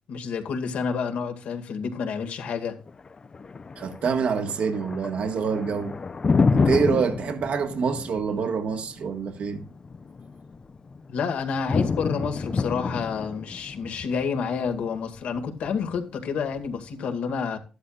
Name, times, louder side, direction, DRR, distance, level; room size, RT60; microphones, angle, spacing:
voice 1, 0.1-2.8 11.1-17.6, left 6 dB, 80° left, 2.1 m, -29 dB
Thunder, 2.9-16.9, left 4 dB, 40° left, 0.6 m, -29 dB
voice 2, 3.8-6.0 6.5-9.6, right 6 dB, 70° right, 1.6 m, -26 dB
13.0 x 11.5 x 2.5 m
cardioid pair, 80°, 2 cm